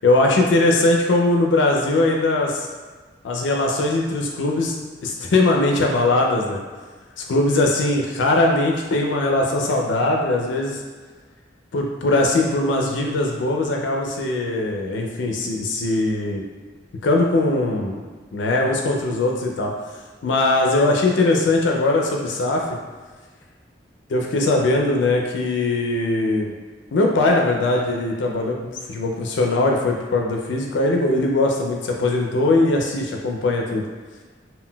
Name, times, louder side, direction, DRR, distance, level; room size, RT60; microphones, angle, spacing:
voice 1, 0.0-2.7 3.2-4.7 5.0-6.6 7.2-10.8 11.7-16.4 17.0-18.0 18.3-19.7 20.2-22.7 24.1-26.5 26.9-28.6 28.9-33.8, left 2 dB, 85° left, 0 dB, 0.4 m, -20 dB
3.7 x 2.2 x 2.2 m, 1.4 s
head